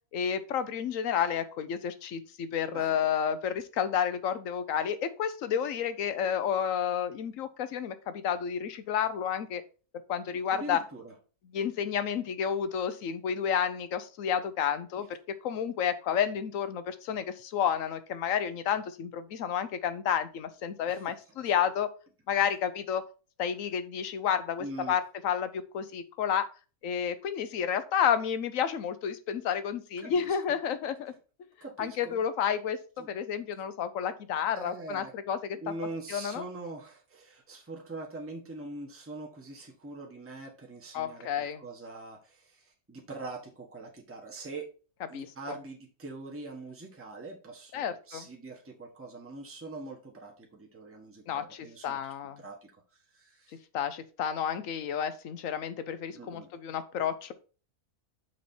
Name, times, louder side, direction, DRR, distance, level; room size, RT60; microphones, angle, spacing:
voice 1, 0.1-9.6 10.1-10.8 11.5-15.2 15.4-21.9 22.3-23.0 23.4-26.5 26.8-31.1 31.8-35.6 36.1-36.4 40.9-41.6 45.1-45.3 47.7-48.3 51.3-52.4 53.7-57.3, left 8 dB, 65° left, 12 dB, 1.0 m, -31 dB
voice 2, 2.7-3.1 10.3-11.1 15.0-15.1 20.9-21.5 24.6-25.0 30.0-30.4 31.6-32.2 33.0-33.1 34.5-35.1 35.6-44.7 45.1-52.7 53.1-53.6 56.1-56.5, right 2 dB, 10° right, 0 dB, 1.2 m, -43 dB
6.2 x 4.3 x 4.3 m, 0.36 s
omnidirectional pair, 1.6 m